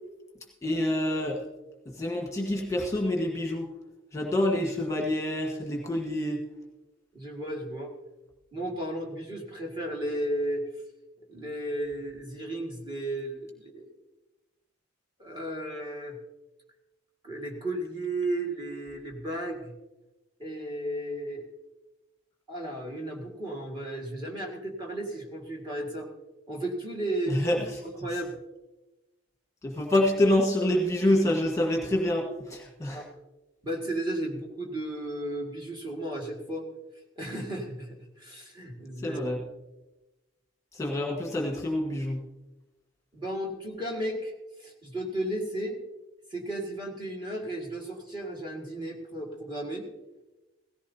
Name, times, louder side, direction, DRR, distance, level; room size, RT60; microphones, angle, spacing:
voice 1, 0.6-1.4 1.8-3.6 4.1-6.4 27.3-27.6 29.6-33.0 39.0-39.4 40.7-42.2, left 1 dB, 15° left, 0 dB, 1.4 m, -27 dB
voice 2, 7.1-7.9 8.5-10.6 11.3-13.9 15.2-16.2 17.2-19.7 20.4-21.5 22.5-26.1 26.5-27.7 28.0-28.3 32.0-32.1 32.9-33.1 33.6-36.7 37.2-39.4 43.1-44.3 44.6-45.8 46.3-49.9, right 1 dB, 25° right, 0 dB, 1.9 m, -34 dB
17.0 x 15.0 x 2.8 m, 1.1 s
head